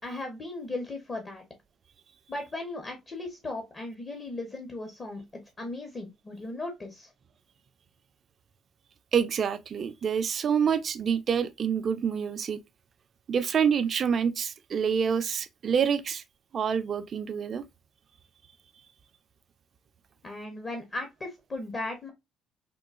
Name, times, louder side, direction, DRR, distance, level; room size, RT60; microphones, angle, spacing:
voice 1, 0.0-1.4 2.3-5.2 5.6-7.1 20.2-22.1, left 2 dB, 35° left, 0.8 m, -37 dB
voice 2, 9.1-12.6 13.3-16.2 16.5-17.6, right 7 dB, 50° right, 0.4 m, -27 dB
3.7 x 2.3 x 2.3 m
supercardioid pair, 80°, 0 cm